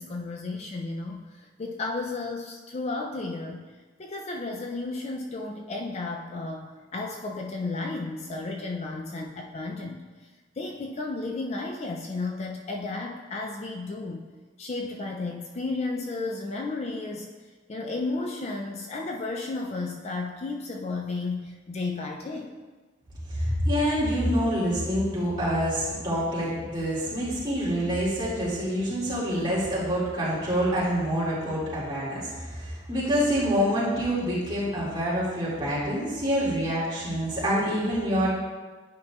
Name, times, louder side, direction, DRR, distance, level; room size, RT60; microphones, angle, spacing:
voice 1, 0.0-3.6 4.0-10.0 10.6-14.3 14.6-17.3 17.7-22.5, left 3 dB, 35° left, 1 dB, 0.3 m, -33 dB
voice 2, 23.3-38.3, equal, 25° right, -8 dB, 2.1 m, -26 dB
9.3 x 5.3 x 2.3 m, 1.3 s
head